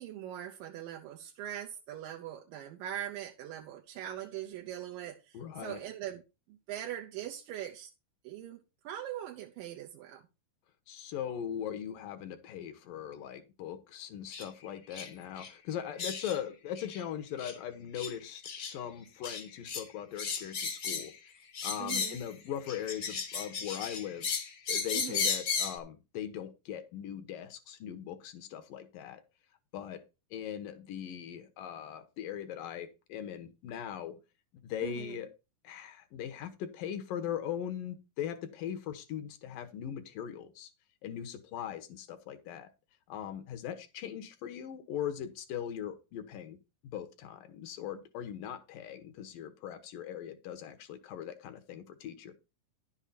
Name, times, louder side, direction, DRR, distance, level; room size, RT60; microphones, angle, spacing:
voice 1, 0.0-6.2 6.5-7.9 8.2-8.6 8.8-10.2 21.8-22.2 24.9-25.3 34.8-35.2, right 11 dB, 80° right, 2.6 m, -41 dB
voice 2, 5.3-5.8 10.9-21.1 21.6-24.3 24.7-29.2 29.7-30.0 30.3-34.2 34.6-35.3 35.6-40.7 41.0-42.7 43.1-46.6 46.8-52.3, left 9 dB, 80° left, 2.8 m, -40 dB
sound 1, 14.3-14.5 14.9-15.1 15.4-15.5 16.0-16.4 16.8-17.0 17.4-17.6 17.9-18.1 18.4-18.7 19.2-19.8 20.2-21.2 21.5-22.3 22.7-25.8, left 5 dB, 50° left, 1.3 m, -35 dB
11.0 x 7.2 x 4.2 m
omnidirectional pair, 3.9 m